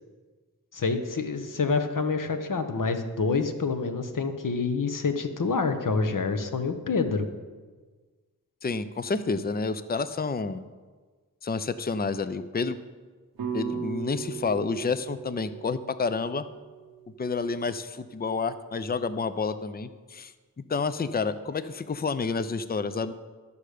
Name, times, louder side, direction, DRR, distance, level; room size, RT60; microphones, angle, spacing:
voice 1, 0.7-7.3, left 4 dB, 60° left, 8 dB, 1.0 m, -27 dB
voice 2, 8.6-10.6 11.4-12.8 13.5-16.4 17.2-20.3 20.7-23.1, left 4 dB, 25° left, 13 dB, 0.5 m, -29 dB
sound 1, 13.4-17.7, right 7 dB, 80° right, 0.9 m, -37 dB
12.0 x 6.6 x 5.0 m, 1.4 s
cardioid pair, 40°, 36 cm